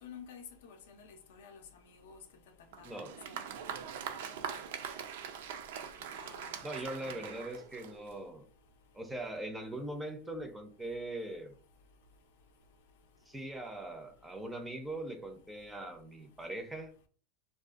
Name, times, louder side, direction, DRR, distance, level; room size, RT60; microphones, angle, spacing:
voice 1, 0.0-2.2 2.8-3.4 4.3-4.6 6.1-7.0, left 7 dB, 80° left, 0.5 m, -52 dB
Applause, 2.7-8.3, right 8 dB, 75° right, 0.3 m, -42 dB
voice 2, 6.6-8.4 8.9-11.5 13.3-16.9, right 1 dB, 5° right, 0.4 m, -41 dB
2.4 x 2.2 x 2.4 m
supercardioid pair, 150°, 0 cm